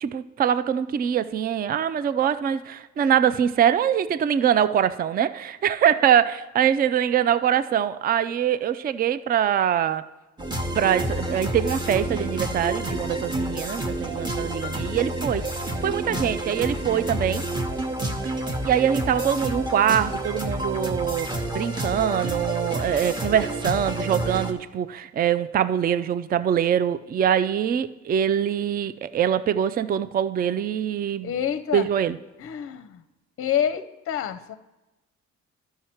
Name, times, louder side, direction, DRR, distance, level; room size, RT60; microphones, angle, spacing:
voice 1, 0.0-10.0 10.7-15.4 15.8-17.4 18.6-31.3 31.7-32.2, right 9 dB, 30° right, 14 dB, 0.4 m, -23 dB
sound 1, 10.4-24.5, right 1 dB, 15° right, 1.0 m, -29 dB
voice 2, 31.2-31.9 32.4-33.0 33.4-34.6, left 9 dB, 45° left, 12 dB, 0.6 m, -28 dB
12.0 x 5.7 x 4.4 m, 1.1 s
cardioid pair, 90°, 30 cm